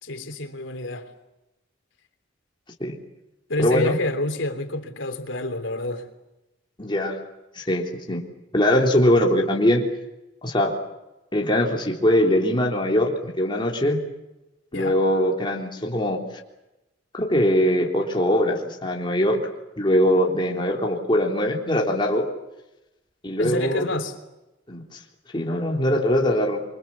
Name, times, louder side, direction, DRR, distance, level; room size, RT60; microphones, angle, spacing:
voice 1, 0.0-1.1 3.5-6.1 14.7-15.0 23.4-24.1, left 1 dB, 80° left, 3.4 m, -28 dB
voice 2, 3.6-3.9 6.8-7.2 7.6-8.2 8.5-9.8 10.4-10.7 11.3-14.0 14.7-16.2 17.1-19.4 19.8-22.3 23.2-23.8 24.7-24.8 25.3-26.6, equal, 25° left, 3.7 m, -21 dB
28.5 x 24.5 x 7.3 m
head